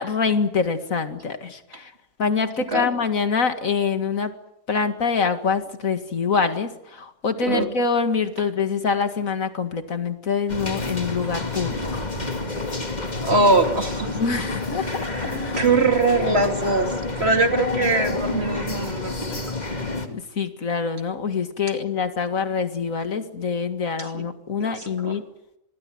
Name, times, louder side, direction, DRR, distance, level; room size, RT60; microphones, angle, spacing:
voice 1, 0.0-1.9 2.2-4.3 4.7-12.1 14.1-15.6 20.1-25.2, left 5 dB, 80° left, 8 dB, 2.4 m, -25 dB
sound 1, 10.5-20.1, left 3 dB, 30° left, 2.4 m, -29 dB
voice 2, 13.2-14.2 14.8-19.4 24.0-24.2 24.6-25.1, right 3 dB, 50° right, 5 dB, 3.0 m, -22 dB
26.0 x 22.0 x 7.9 m, 0.82 s
omnidirectional pair, 1.4 m